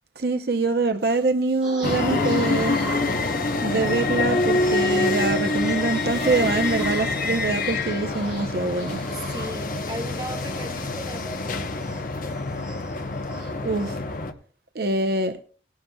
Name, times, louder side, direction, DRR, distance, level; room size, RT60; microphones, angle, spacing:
voice 1, 0.2-2.8 3.6-9.0 13.6-14.0 14.7-15.4, right 3 dB, 55° right, 0.7 m, -24 dB
sound 1, 1.6-13.9, right 2 dB, 5° right, 6.8 m, -39 dB
sound 2, 1.8-14.3, left 3 dB, 45° left, 0.9 m, -26 dB
sound 3, 5.9-8.5, right 1 dB, 40° right, 1.0 m, -38 dB
voice 2, 9.1-11.7, right 1 dB, 20° right, 1.3 m, -37 dB
18.0 x 12.0 x 2.3 m
head